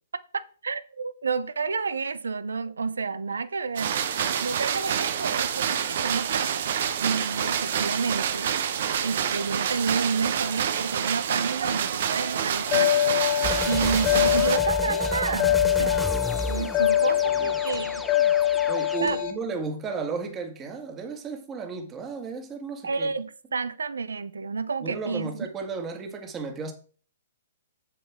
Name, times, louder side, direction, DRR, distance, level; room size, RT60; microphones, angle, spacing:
voice 1, 0.3-6.7 7.0-13.3 13.6-16.1 16.5-18.0 19.0-19.2 22.8-25.5, right 4 dB, 85° right, 0.6 m, -30 dB
sound 1, 3.8-14.6, right 8 dB, 60° right, 1.0 m, -27 dB
sound 2, 12.7-19.3, left 12 dB, 35° left, 1.9 m, -24 dB
sound 3, 13.4-19.0, equal, ahead, 0.3 m, -33 dB
voice 2, 18.7-23.1 24.8-26.7, right 4 dB, 20° right, 1.9 m, -34 dB
7.6 x 7.4 x 3.7 m
hypercardioid pair, 130°, 0 cm